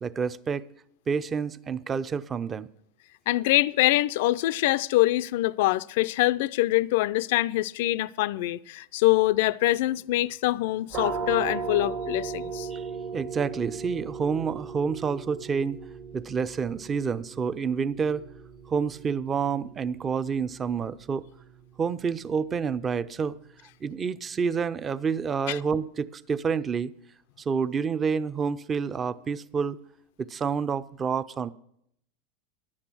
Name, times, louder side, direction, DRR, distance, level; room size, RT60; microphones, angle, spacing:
voice 1, 0.0-0.6 1.1-2.7 12.7-12.9 13.1-15.8 16.1-18.2 18.7-21.2 21.8-23.3 23.8-26.9 27.5-29.8 30.3-31.5, right 6 dB, 25° right, 0.5 m, -28 dB
voice 2, 3.3-12.7 25.5-25.6, left 17 dB, 70° left, 0.3 m, -24 dB
sound 1, 10.9-22.4, right 5 dB, 55° right, 1.3 m, -38 dB
11.0 x 8.7 x 6.1 m
supercardioid pair, 115°, 0 cm